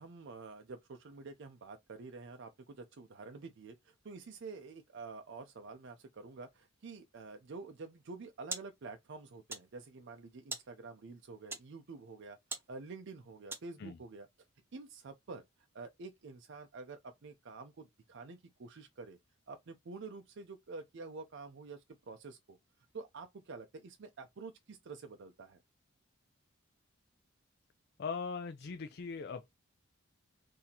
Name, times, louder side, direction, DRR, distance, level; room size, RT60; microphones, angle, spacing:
voice 1, 0.0-14.3 14.7-19.2 19.5-22.6 22.9-25.6, right 4 dB, 55° right, 0.5 m, -48 dB
sound 1, 7.9-14.0, right 3 dB, 10° right, 0.8 m, -48 dB
voice 2, 28.0-29.5, left 5 dB, 50° left, 0.4 m, -40 dB
4.0 x 2.7 x 2.8 m
head